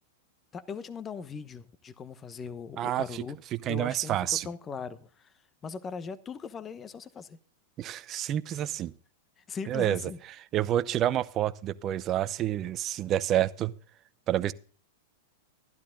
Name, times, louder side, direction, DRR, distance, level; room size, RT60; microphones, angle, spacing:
voice 1, 0.5-3.4 3.7-5.3 5.6-7.4 9.5-10.2, left 6 dB, 25° left, 1.0 m, -39 dB
voice 2, 2.8-3.2 3.6-4.5 7.8-8.9 9.7-10.0 10.5-13.7 14.3-14.5, right 12 dB, 35° right, 0.7 m, -28 dB
12.0 x 11.5 x 3.8 m
hypercardioid pair, 120°, 0 cm